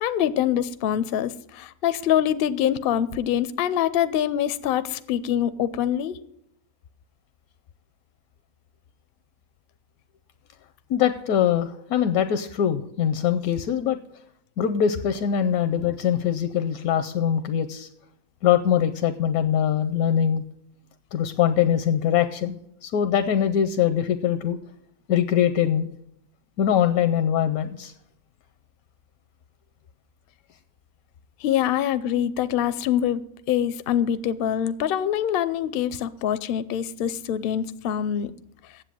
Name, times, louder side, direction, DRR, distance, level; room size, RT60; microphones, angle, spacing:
voice 1, 0.0-6.2 31.4-33.2 33.5-38.3, left 10 dB, 65° left, 14 dB, 0.6 m, -24 dB
voice 2, 10.9-14.0 14.6-17.9 18.4-20.4 21.1-24.6 25.1-26.0 26.6-27.9, left 9 dB, 85° left, 8 dB, 1.1 m, -22 dB
8.2 x 7.7 x 7.6 m, 0.75 s
omnidirectional pair, 1.5 m